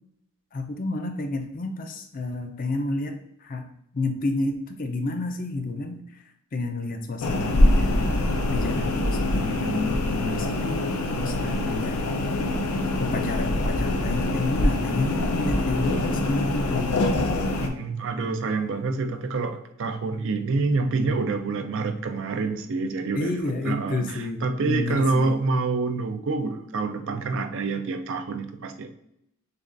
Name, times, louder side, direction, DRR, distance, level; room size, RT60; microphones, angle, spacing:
voice 1, 0.5-3.7 3.9-6.2 6.5-8.2 8.5-12.1 13.0-17.3 23.1-25.4, left 2 dB, 40° left, 5 dB, 0.5 m, -30 dB
sound 1, 7.2-17.7, left 1 dB, 90° left, 0.6 m, -24 dB
voice 2, 17.6-28.9, right 3 dB, 55° right, 7 dB, 0.4 m, -27 dB
6.6 x 2.4 x 2.5 m, 0.77 s
head